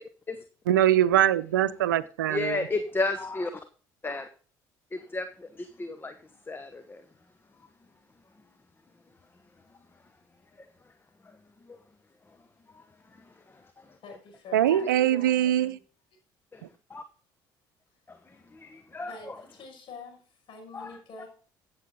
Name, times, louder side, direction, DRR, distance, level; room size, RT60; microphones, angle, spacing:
voice 1, 0.7-2.6 14.5-15.8, right 12 dB, 90° right, 0.6 m, -23 dB
voice 2, 2.2-3.6 4.0-4.3 4.9-7.0 9.7-10.0 10.6-10.9 11.2-11.8 12.3-14.0 14.6-14.9 16.5-17.0 18.1-19.4 20.7-21.0, left 3 dB, 20° left, 1.2 m, -35 dB
voice 3, 14.0-15.8 18.3-18.4 18.7-21.3, left 3 dB, 60° left, 5.6 m, -47 dB
15.0 x 7.6 x 3.8 m
hypercardioid pair, 60°, 10 cm